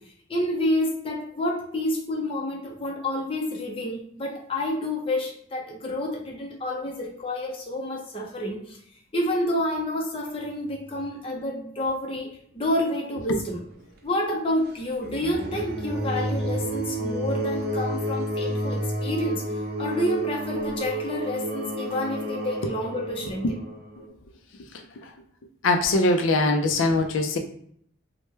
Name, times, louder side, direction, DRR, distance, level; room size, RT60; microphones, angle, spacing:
voice 1, 0.3-8.8 9.1-12.3 12.5-13.6 14.0-23.4, left 1 dB, 30° left, 0 dB, 0.6 m, -29 dB
sound 1, 15.0-24.1, right 1 dB, 50° right, 0.6 m, -30 dB
voice 2, 25.6-27.4, left 2 dB, 85° left, 5 dB, 0.4 m, -22 dB
3.0 x 2.1 x 3.2 m, 0.64 s
head